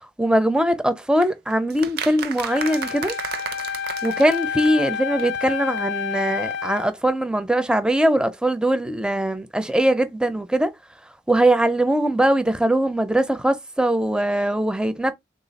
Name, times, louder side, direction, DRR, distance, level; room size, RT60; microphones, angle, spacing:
voice 1, 0.2-3.1 4.0-10.7 11.3-15.1, right 1 dB, 5° right, 0.4 m, -21 dB
sound 1, 1.2-5.2 5.5-5.6 5.8-5.9, right 7 dB, 55° right, 0.6 m, -33 dB
Wind instrument woodwind instrument, 2.5-6.9, left 7 dB, 65° left, 0.3 m, -29 dB
3.6 x 2.4 x 4.0 m
head